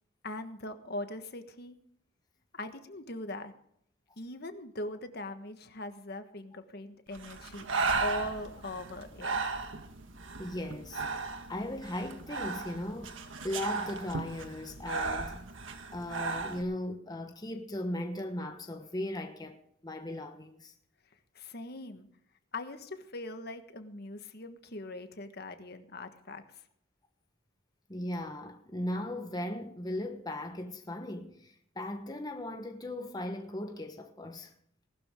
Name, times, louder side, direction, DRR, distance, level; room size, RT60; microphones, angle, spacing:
voice 1, 0.2-1.8 2.5-3.5 4.2-7.7 8.0-9.5 21.3-22.1 22.5-26.4, left 2 dB, 55° left, 1.5 m, -41 dB
Breathing, 7.1-16.6, right 4 dB, 80° right, 1.6 m, -36 dB
voice 2, 10.4-11.0 11.5-13.2 13.4-15.5 15.9-19.6 19.8-20.7 27.9-34.5, left 1 dB, 20° left, 1.2 m, -37 dB
19.0 x 12.5 x 3.7 m
head